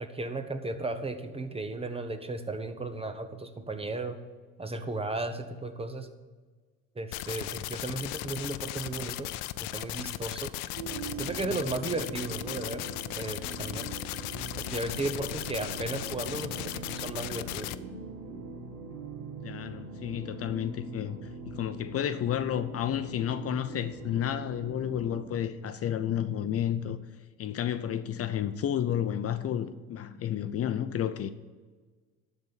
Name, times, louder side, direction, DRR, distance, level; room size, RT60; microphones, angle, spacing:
voice 1, 0.0-4.2 4.6-6.1 7.0-9.3 9.6-10.5 11.2-12.9 13.2-13.9 14.6-17.7, right 2 dB, 20° right, 8 dB, 1.0 m, -35 dB
sound 1, 7.1-17.8, left 16 dB, 90° left, 0.5 m, -37 dB
sound 2, 10.7-25.3, right 4 dB, 85° right, 1.7 m, -42 dB
voice 2, 19.4-27.0 27.4-31.3, left 10 dB, 45° left, 11 dB, 0.6 m, -31 dB
12.0 x 4.1 x 7.4 m, 1.4 s
cardioid pair, 95°, 33 cm